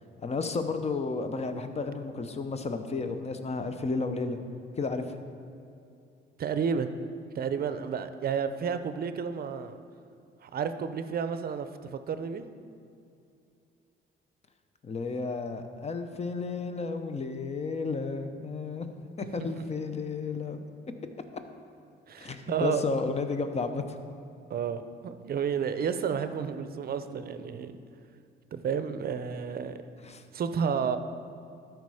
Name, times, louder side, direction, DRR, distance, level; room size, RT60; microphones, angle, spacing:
voice 1, 0.2-4.4 4.8-5.1 14.8-18.9 19.2-20.6 22.2-23.8 30.0-30.2, left 4 dB, 35° left, 8 dB, 0.7 m, -32 dB
voice 2, 6.4-7.0 7.3-9.7 10.4-12.5 22.1-22.8 24.5-27.7 28.5-29.8 30.3-31.0, right 7 dB, 50° right, 10 dB, 0.6 m, -31 dB
12.5 x 4.7 x 4.9 m, 2.6 s
cardioid pair, 90°, 20 cm